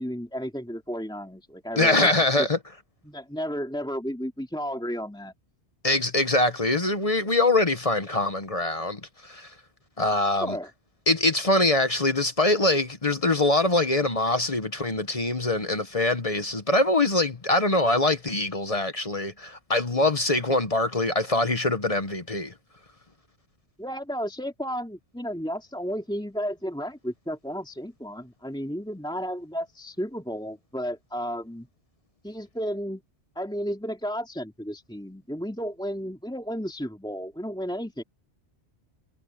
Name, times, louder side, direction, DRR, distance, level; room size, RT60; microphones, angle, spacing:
voice 1, 0.0-2.5 3.0-5.3 10.4-10.7 23.8-31.7 32.2-33.0 33.3-38.0, equal, 5° left, 2.7 m, -33 dB
voice 2, 1.8-2.6 5.8-9.5 10.0-10.6 11.1-22.5, left 2 dB, 35° left, 1.1 m, -23 dB
omnidirectional pair, 1.1 m